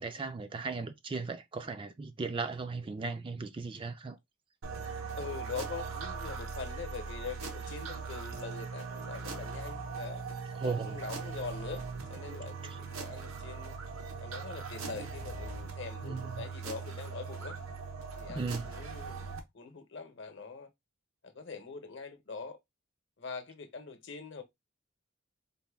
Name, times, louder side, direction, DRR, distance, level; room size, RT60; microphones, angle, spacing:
voice 1, 0.0-4.2 10.6-11.0 12.6-12.8 16.0-16.4 18.3-18.7, right 4 dB, 25° right, 0.3 m, -37 dB
sound 1, 4.6-19.4, right 5 dB, 85° right, 0.8 m, -40 dB
voice 2, 5.1-10.2 10.6-11.8 12.1-13.8 14.2-17.6 18.1-20.7 21.2-22.6 23.2-24.4, left 5 dB, 60° left, 0.8 m, -43 dB
4.1 x 2.2 x 3.4 m
head